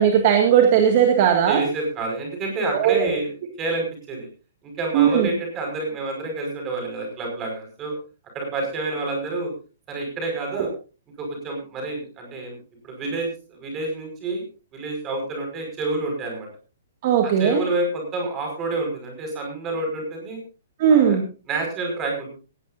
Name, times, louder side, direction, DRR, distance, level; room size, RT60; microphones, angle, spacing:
voice 1, 0.0-1.6 2.8-3.1 4.9-5.3 10.6-10.7 17.0-17.6 20.8-21.2, right 8 dB, 30° right, 4 dB, 2.1 m, -17 dB
voice 2, 1.5-3.3 3.6-4.3 4.6-7.9 8.3-9.5 9.9-10.7 11.2-12.6 12.8-14.4 14.7-16.5 17.2-20.4 20.9-21.2 21.5-22.3, right 2 dB, 15° right, 2 dB, 5.5 m, -28 dB
18.0 x 17.0 x 2.6 m, 0.34 s
hypercardioid pair, 180°, 0 cm